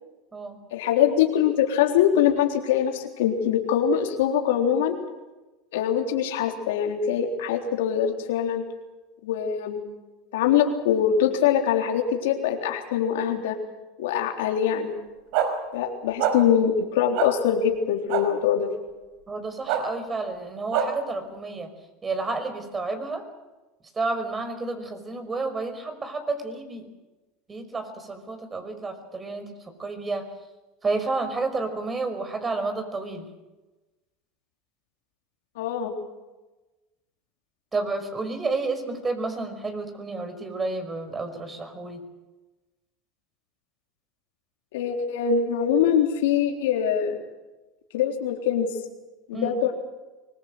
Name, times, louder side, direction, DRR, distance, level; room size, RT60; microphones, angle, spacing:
voice 1, 0.7-5.0 5.7-8.6 9.2-9.8 10.3-13.6 14.0-14.9 15.7-18.7 35.6-35.9 44.7-47.2 47.9-48.8 49.3-49.7, left 9 dB, 85° left, 2 dB, 3.7 m, -23 dB
sound 1, 15.3-15.5 16.2-16.3 17.1-17.3 18.1-18.2 19.7-19.8 20.7-20.9, right 10 dB, 70° right, 5.2 m, -23 dB
voice 2, 19.3-21.7 22.0-23.2 24.0-26.8 27.5-29.5 29.8-30.2 30.8-33.2 37.7-42.0 49.3-49.5, right 3 dB, 20° right, 8 dB, 5.4 m, -30 dB
24.5 x 21.5 x 8.0 m, 1.1 s
supercardioid pair, 105°, 0 cm